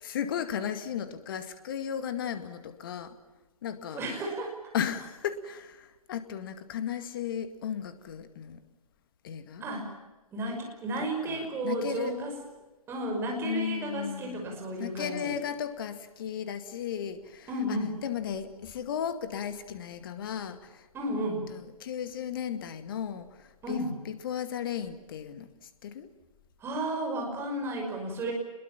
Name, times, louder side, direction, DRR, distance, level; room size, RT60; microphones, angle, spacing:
voice 1, 0.0-3.2 3.6-4.0 4.7-8.6 9.2-9.6 11.3-12.2 13.4-20.9 21.5-25.5 25.8-26.1, left 8 dB, 35° left, 10 dB, 2.2 m, -35 dB
voice 2, 3.9-4.5 9.6-9.9 10.3-12.4 12.9-15.4 17.5-17.9 20.9-21.5 23.6-23.9 26.6-28.3, right 1 dB, 10° right, 1 dB, 5.9 m, -33 dB
28.5 x 21.5 x 7.3 m, 1.1 s
figure-of-eight pair, 135°, 19 cm